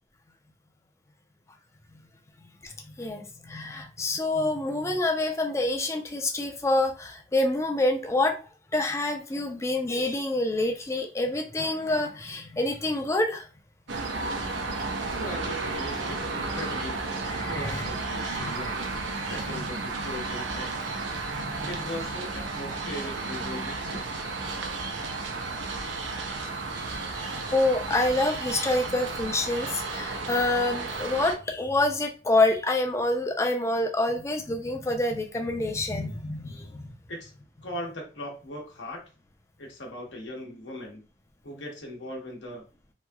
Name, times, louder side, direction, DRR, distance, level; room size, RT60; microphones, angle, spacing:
voice 1, 2.6-8.4 8.7-13.5 17.3-17.9 18.3-18.7 19.2-19.6 21.1-21.7 26.8-36.9, left 2 dB, 15° left, 4 dB, 0.4 m, -27 dB
sound 1, 13.9-31.3, right 3 dB, 80° right, 0.6 m, -33 dB
voice 2, 15.1-18.9 19.3-20.9 21.7-24.2 37.1-37.3 37.6-39.0 39.6-41.0 41.4-42.7, left 1 dB, 75° left, 0 dB, 0.9 m, -39 dB
3.0 x 2.7 x 2.2 m, 0.34 s
head